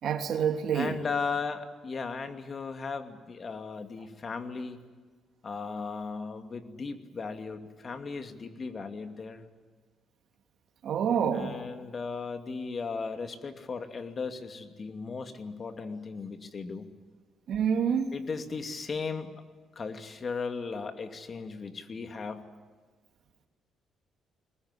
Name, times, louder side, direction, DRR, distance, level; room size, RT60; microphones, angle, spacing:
voice 1, 0.0-0.9 10.8-11.5 17.5-18.1, right 7 dB, 70° right, 4 dB, 2.9 m, -27 dB
voice 2, 0.7-4.8 5.4-9.4 11.3-16.9 18.1-19.3 19.8-22.4, left 4 dB, 40° left, 7 dB, 2.5 m, -36 dB
22.5 x 19.5 x 9.9 m, 1.4 s
cardioid pair, 90°, 0 cm